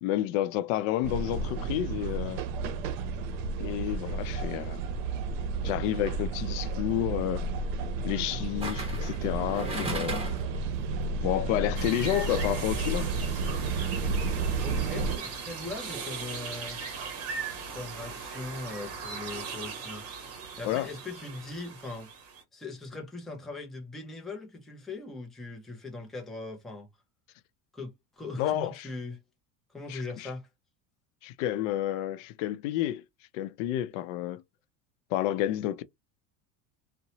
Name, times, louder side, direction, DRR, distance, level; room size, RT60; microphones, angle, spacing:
voice 1, 0.0-2.4 3.6-4.8 5.6-7.4 8.0-10.2 11.2-13.1 20.6-20.9 28.4-28.9 29.9-30.3 31.2-33.0 33.3-34.4 35.1-35.8, left 13 dB, 80° left, 0.5 m, -30 dB
sound 1, 1.0-15.2, right 3 dB, 85° right, 0.6 m, -32 dB
sound 2, 6.0-6.3 8.6-10.6 10.9-11.0, right 1 dB, 15° right, 1.0 m, -36 dB
sound 3, 11.8-22.4, right 5 dB, 40° right, 0.8 m, -39 dB
voice 2, 14.6-16.8 17.7-22.1 22.5-26.9 27.7-29.2 29.7-30.5, left 3 dB, ahead, 0.4 m, -40 dB
2.8 x 2.1 x 2.7 m
cardioid pair, 150°, 37 cm